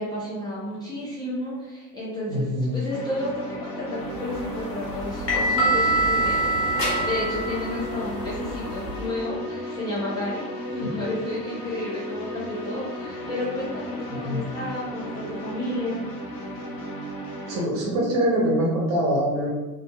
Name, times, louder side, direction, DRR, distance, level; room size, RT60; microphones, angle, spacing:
voice 1, 0.0-16.0, left 1 dB, 10° left, -11 dB, 0.7 m, -32 dB
voice 2, 2.3-2.7 10.8-10.9 14.1-14.4 17.5-19.5, equal, 60° right, -4 dB, 0.8 m, -24 dB
sound 1, 2.9-17.6, equal, 45° left, 0.7 m, -35 dB
sound 2, 4.2-9.0, right 1 dB, 75° left, 1.0 m, -25 dB
2.6 x 2.3 x 2.2 m, 1.2 s
figure-of-eight pair, 70°, 49 cm